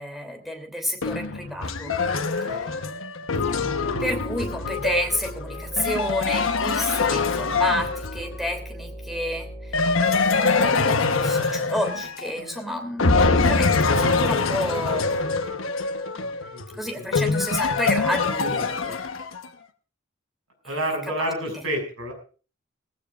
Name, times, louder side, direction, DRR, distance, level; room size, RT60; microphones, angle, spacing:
voice 1, 0.0-2.0 4.0-15.2 16.1-16.2 16.7-19.0 21.5-21.7, equal, ahead, 4 dB, 2.9 m, -30 dB
sound 1, 1.0-8.4 9.7-12.6 13.0-19.5, left 4 dB, 80° left, 1.1 m, -24 dB
sound 2, 3.3-10.8, equal, 35° left, 5.0 m, -39 dB
voice 2, 16.2-16.6 16.9-17.0 18.1-19.1 20.6-22.1, right 1 dB, 85° right, 4 dB, 6.0 m, -31 dB
18.5 x 15.5 x 2.5 m, 0.37 s
head